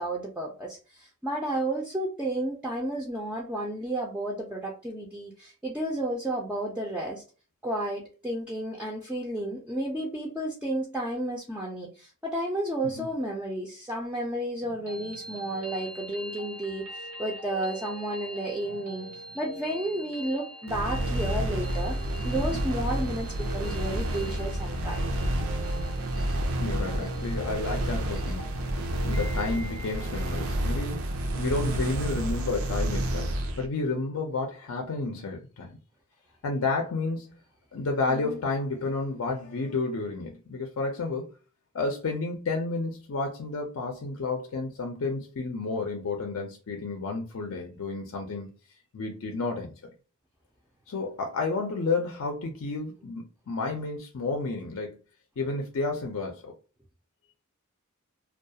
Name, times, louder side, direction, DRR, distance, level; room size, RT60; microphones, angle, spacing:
voice 1, 0.0-7.2 7.6-19.1 19.3-25.0 38.1-38.4, right 1 dB, 5° right, 0.4 m, -32 dB
sound 1, 14.6-30.6, equal, 85° right, 0.8 m, -43 dB
sound 2, 20.7-33.7, right 1 dB, 70° right, 0.4 m, -30 dB
voice 2, 26.6-28.5 29.0-35.8 36.4-37.3 37.7-41.4 41.7-48.5 48.9-49.7 50.9-55.0 55.4-56.5, left 3 dB, 70° left, 0.5 m, -31 dB
2.3 x 2.3 x 2.7 m
head